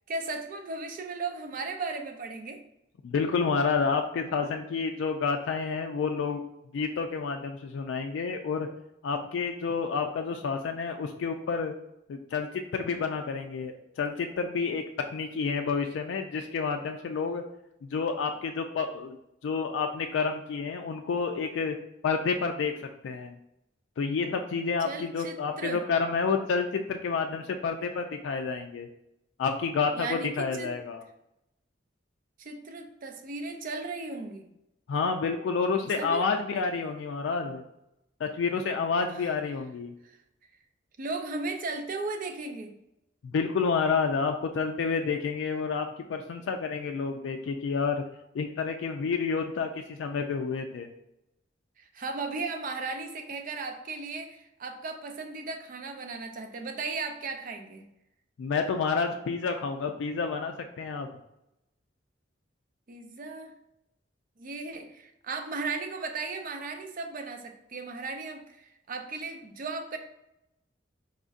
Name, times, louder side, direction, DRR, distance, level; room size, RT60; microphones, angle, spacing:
voice 1, 0.1-2.6 24.8-25.8 30.0-30.7 32.4-34.5 35.8-36.2 39.2-39.3 40.0-40.2 41.0-42.7 51.8-57.8 62.9-63.5 64.4-70.0, right 3 dB, 50° right, 5 dB, 0.5 m, -36 dB
voice 2, 3.0-6.4 6.7-8.7 9.0-11.7 12.1-14.8 15.1-17.4 17.8-19.2 19.4-21.7 22.0-22.7 23.0-23.3 24.0-28.9 29.4-31.0 34.9-37.6 38.2-39.9 43.2-48.0 48.3-50.9 58.4-61.1, left 5 dB, 80° left, 4 dB, 0.3 m, -29 dB
4.2 x 3.9 x 2.4 m, 0.85 s
head